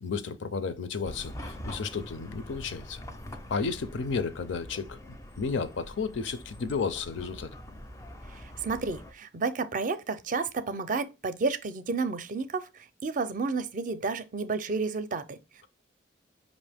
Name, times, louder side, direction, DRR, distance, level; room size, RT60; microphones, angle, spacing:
voice 1, 0.0-3.0 3.5-7.5, left 5 dB, 70° left, 0.5 m, -33 dB
Chatter / Car passing by / Traffic noise roadway noise, 1.0-9.1, equal, 15° left, 0.4 m, -44 dB
voice 2, 8.3-12.7 13.0-15.4, right 4 dB, 40° right, 0.5 m, -31 dB
5.4 x 2.6 x 3.4 m
head